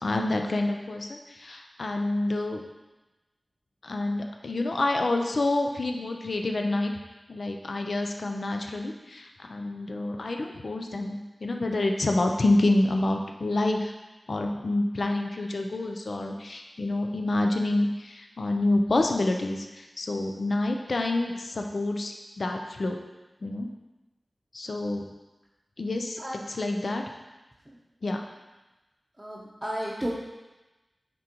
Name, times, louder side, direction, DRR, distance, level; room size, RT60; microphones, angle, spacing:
voice 1, 0.0-2.6 3.8-6.9 7.3-13.9 14.3-23.0 23.4-23.7 24.5-25.1 25.8-26.2 26.5-27.0 28.0-28.2, left 2 dB, 70° left, 3 dB, 0.5 m, -28 dB
voice 2, 29.2-30.1, equal, 15° right, -5 dB, 0.8 m, -33 dB
9.4 x 3.7 x 3.0 m, 1.1 s
wide cardioid pair, 80°, 0 cm